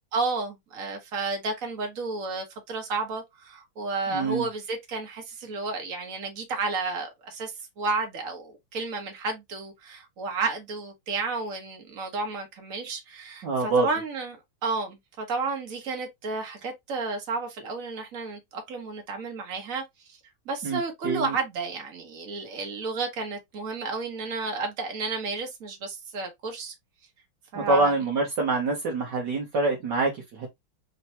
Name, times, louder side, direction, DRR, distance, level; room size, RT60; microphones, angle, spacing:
voice 1, 0.1-19.8 20.4-26.7 27.5-27.9, right 3 dB, 45° right, 1.6 m, -32 dB
voice 2, 4.1-4.5 13.4-13.9 20.6-21.3 27.5-30.5, right 3 dB, 60° right, 1.6 m, -25 dB
4.5 x 2.8 x 2.8 m
omnidirectional pair, 2.2 m